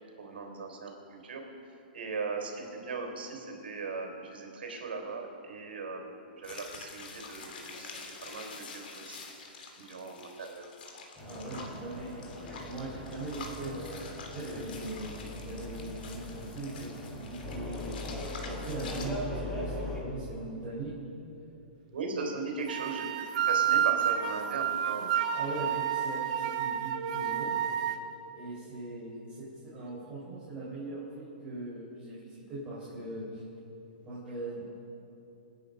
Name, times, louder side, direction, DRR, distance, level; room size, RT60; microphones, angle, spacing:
voice 1, 0.2-1.4 1.9-9.2 9.8-10.7 21.9-23.1 23.4-25.3 25.5-25.7, right 4 dB, 85° right, 3 dB, 3.8 m, -38 dB
sound 1, 6.4-19.1, left 4 dB, 70° left, 3.2 m, -47 dB
sound 2, 11.2-20.0, left 1 dB, 10° left, 3.0 m, -40 dB
voice 2, 11.2-12.2 12.6-15.1 15.4-18.2 18.4-21.0 25.3-27.5 28.3-33.4 34.0-34.6, right 2 dB, 15° right, -9 dB, 4.3 m, -40 dB
sound 3, 22.7-28.0, right 9 dB, 45° right, 1.2 m, -29 dB
26.5 x 9.8 x 5.3 m, 2.9 s
hypercardioid pair, 155°, 5 cm